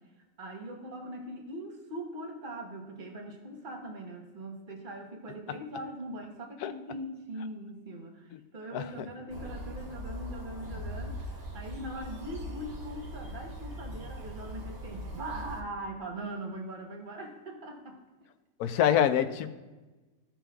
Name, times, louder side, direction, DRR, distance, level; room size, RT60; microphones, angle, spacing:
voice 1, 0.4-18.0, right 1 dB, 35° right, 0 dB, 1.3 m, -41 dB
sound 1, 9.3-15.6, left 1 dB, 70° right, 2.0 m, -40 dB
voice 2, 18.6-19.5, left 10 dB, 80° left, 11 dB, 1.1 m, -25 dB
14.5 x 5.8 x 2.4 m, 1.2 s
omnidirectional pair, 1.6 m